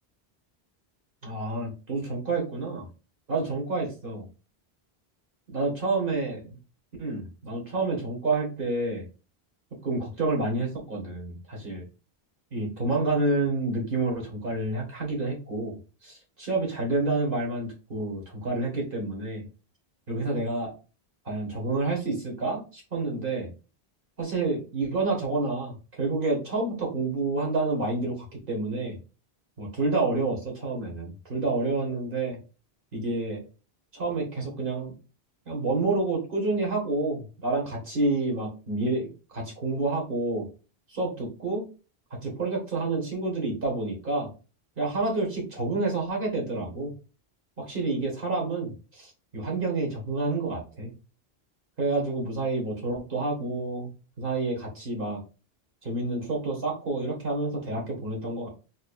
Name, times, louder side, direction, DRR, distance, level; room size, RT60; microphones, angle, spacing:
voice 1, 1.2-2.9 3.3-4.3 5.5-6.4 7.0-9.0 9.8-11.8 12.5-15.8 16.0-19.4 20.1-20.7 21.2-23.5 24.2-29.0 29.6-32.4 32.9-33.4 33.9-34.9 35.5-40.5 40.9-41.7 42.2-44.3 44.8-46.9 47.6-50.9 51.8-53.9 54.2-55.2 55.8-58.5, right 3 dB, 60° right, -1 dB, 1.7 m, -29 dB
4.4 x 3.6 x 2.3 m, 0.33 s
omnidirectional pair, 1.1 m